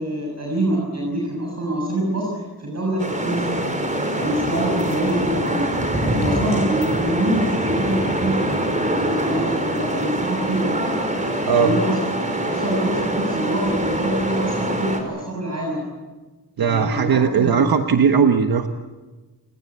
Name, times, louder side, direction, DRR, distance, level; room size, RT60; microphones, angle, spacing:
voice 1, 0.0-3.6 4.1-5.7 6.1-8.5 8.8-10.8 11.6-15.9 16.6-17.6, right 1 dB, 40° right, -2 dB, 7.0 m, -25 dB
sound 1, 3.0-15.0, right 1 dB, 20° right, 5.4 m, -24 dB
voice 2, 16.6-18.7, right 6 dB, 65° right, 6 dB, 1.4 m, -18 dB
30.0 x 20.0 x 8.3 m, 1.3 s
wide cardioid pair, 115°, 39 cm